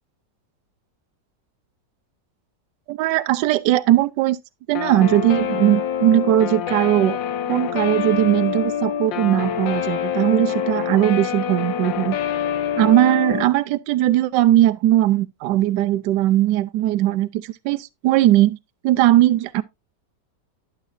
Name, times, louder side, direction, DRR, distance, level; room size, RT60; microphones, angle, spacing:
voice 1, 2.9-4.4 4.7-7.2 7.5-12.2 12.8-18.6 18.8-19.6, right 14 dB, 75° right, 1.2 m, -19 dB
Guitar, 4.7-13.4, left 9 dB, 80° left, 1.5 m, -26 dB
12.0 x 7.7 x 2.5 m
omnidirectional pair, 2.0 m